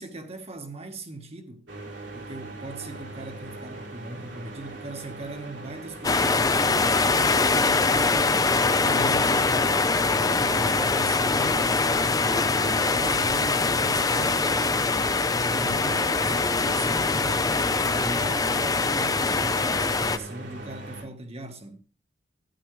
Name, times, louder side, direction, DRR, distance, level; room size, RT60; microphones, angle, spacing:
voice 1, 0.0-1.7 2.1-8.5 8.8-9.7 10.4-11.9 12.2-14.7 15.2-21.8, right 2 dB, 35° right, 1.6 m, -39 dB
sound 1, 1.7-21.0, right 2 dB, 85° right, 3.4 m, -40 dB
sound 2, 6.0-20.2, left 3 dB, 20° left, 0.6 m, -23 dB
13.0 x 10.5 x 3.3 m
head